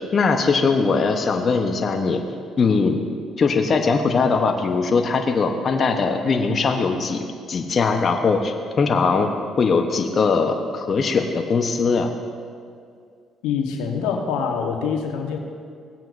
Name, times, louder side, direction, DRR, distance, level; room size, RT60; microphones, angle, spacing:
voice 1, 0.1-2.2 2.6-3.0 3.4-9.3 9.6-12.1, left 4 dB, 45° left, 4 dB, 0.9 m, -20 dB
voice 2, 13.4-15.4, left 6 dB, 85° left, 2 dB, 1.1 m, -25 dB
17.5 x 9.0 x 2.6 m, 2.2 s
supercardioid pair, 65°, 0 cm